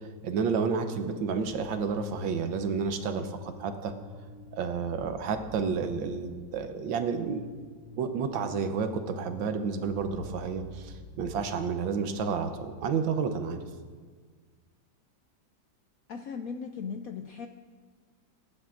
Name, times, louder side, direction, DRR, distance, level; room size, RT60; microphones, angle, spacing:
voice 1, 0.2-3.9 4.5-7.5 8.0-13.6, right 5 dB, 80° right, 7 dB, 1.6 m, -30 dB
sound 1, 1.4-13.7, left 1 dB, 40° right, 4.1 m, -50 dB
voice 2, 16.1-17.5, left 6 dB, 75° left, 5 dB, 0.8 m, -37 dB
21.5 x 11.0 x 2.5 m, 1.5 s
omnidirectional pair, 2.1 m